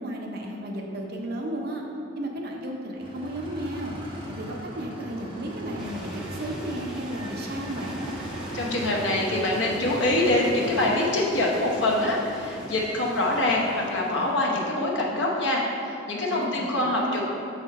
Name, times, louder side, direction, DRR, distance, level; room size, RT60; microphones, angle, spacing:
voice 1, 0.0-1.8 2.2-3.9 4.3-8.1 16.3-17.2, right 1 dB, 50° right, 0 dB, 0.7 m, -33 dB
sound 1, 3.0-10.9, right 1 dB, 25° right, 0.9 m, -38 dB
sound 2, 5.8-14.8, equal, 5° right, 0.5 m, -42 dB
voice 2, 8.5-17.2, left 1 dB, 60° left, -2 dB, 0.9 m, -25 dB
6.3 x 4.2 x 4.1 m, 2.8 s
head